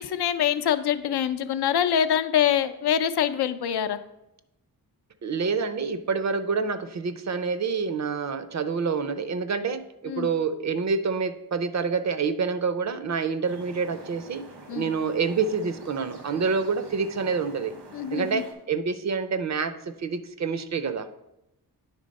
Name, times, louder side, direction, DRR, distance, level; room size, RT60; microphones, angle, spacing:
voice 1, 0.0-4.0 10.1-10.3 14.7-14.9 17.9-18.4, left 9 dB, 85° left, 11 dB, 0.5 m, -25 dB
voice 2, 5.2-14.4 14.7-17.7 18.1-21.1, right 5 dB, 45° right, 12 dB, 0.5 m, -27 dB
sound 1, 13.5-18.5, right 3 dB, 85° right, 1.4 m, -46 dB
9.8 x 3.5 x 5.2 m, 0.90 s
wide cardioid pair, 155°, 38 cm